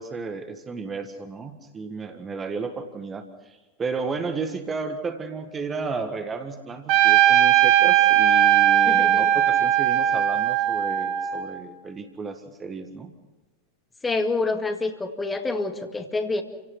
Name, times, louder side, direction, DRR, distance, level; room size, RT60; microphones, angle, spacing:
voice 1, 0.0-13.1, right 4 dB, 20° right, 7 dB, 1.7 m, -33 dB
Trumpet, 6.9-11.6, right 11 dB, 45° right, 1.5 m, -19 dB
voice 2, 8.9-9.3 14.0-16.4, left 3 dB, 15° left, 6 dB, 2.1 m, -27 dB
29.0 x 17.5 x 6.0 m, 1.2 s
figure-of-eight pair, 90°, 0 cm